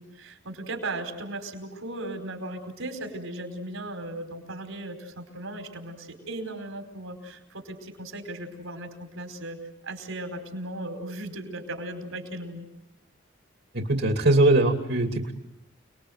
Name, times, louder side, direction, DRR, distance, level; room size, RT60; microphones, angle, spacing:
voice 1, 0.0-9.6 9.8-12.7, right 1 dB, 85° right, 5 dB, 5.0 m, -37 dB
voice 2, 13.7-15.3, right 2 dB, 55° right, 3 dB, 2.5 m, -21 dB
29.5 x 21.5 x 8.0 m, 0.89 s
head